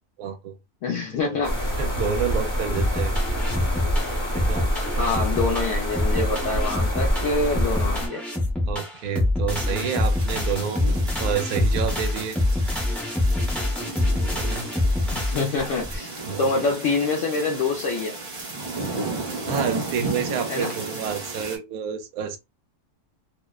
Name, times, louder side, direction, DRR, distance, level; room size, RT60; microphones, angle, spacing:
voice 1, 0.2-0.6 1.2-1.4 1.8-3.1 4.3-4.7 8.6-12.4 14.2-14.7 16.3-16.5 19.5-22.4, right 7 dB, 75° right, 1.0 m, -29 dB
voice 2, 0.8-1.6 5.0-8.2 15.1-18.2 20.5-20.7, left 3 dB, 65° left, 0.8 m, -26 dB
sound 1, 1.4-8.1, equal, 20° left, 0.8 m, -26 dB
sound 2, 2.8-16.0, left 1 dB, ahead, 0.3 m, -25 dB
sound 3, 9.5-21.6, right 3 dB, 45° right, 1.1 m, -34 dB
2.7 x 2.0 x 2.2 m
omnidirectional pair, 1.6 m